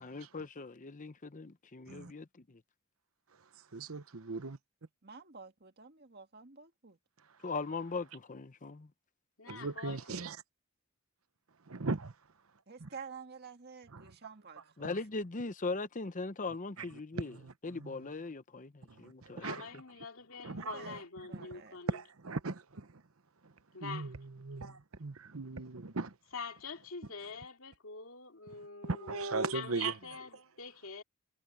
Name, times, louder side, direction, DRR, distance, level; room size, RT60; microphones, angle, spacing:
voice 1, 0.0-2.6 7.4-8.9 10.1-10.2 14.8-17.4 17.6-19.4, left 3 dB, 35° left, 0.8 m, -40 dB
voice 2, 3.7-4.6 9.5-10.4 11.7-12.1 12.8-12.9 13.9-14.1 17.3-17.5 17.8-17.9 19.0-19.6 20.4-21.0 21.3-21.5 21.9-22.9 23.8-24.1 24.4-26.1 28.8-29.9, right 3 dB, 75° right, 1.0 m, -38 dB
voice 3, 5.0-7.0 12.7-14.9 20.5-21.8, right 5 dB, 50° right, 1.9 m, -50 dB
voice 4, 9.4-10.3 19.4-22.0 23.7-24.1 26.3-29.2 29.5-31.0, left 4 dB, 70° left, 2.6 m, -45 dB
head